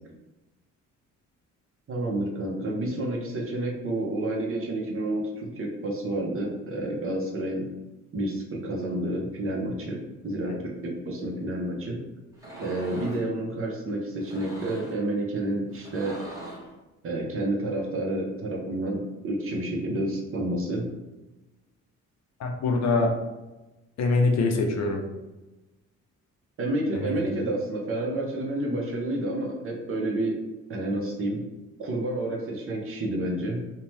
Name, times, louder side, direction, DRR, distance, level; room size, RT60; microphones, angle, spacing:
voice 1, 1.9-7.7 8.1-10.5 10.8-12.0 12.6-16.2 17.0-20.9 26.6-30.4 30.7-31.5 31.8-33.6, right 1 dB, 45° right, -1 dB, 0.7 m, -29 dB
sound 1, 12.3-13.3 14.2-15.0 15.7-16.7, right 1 dB, 10° right, 0.9 m, -41 dB
voice 2, 22.4-23.1 24.0-25.0 26.9-27.2, left 3 dB, 65° left, 2 dB, 0.6 m, -24 dB
2.7 x 2.2 x 3.1 m, 1.0 s
cardioid pair, 90°, 30 cm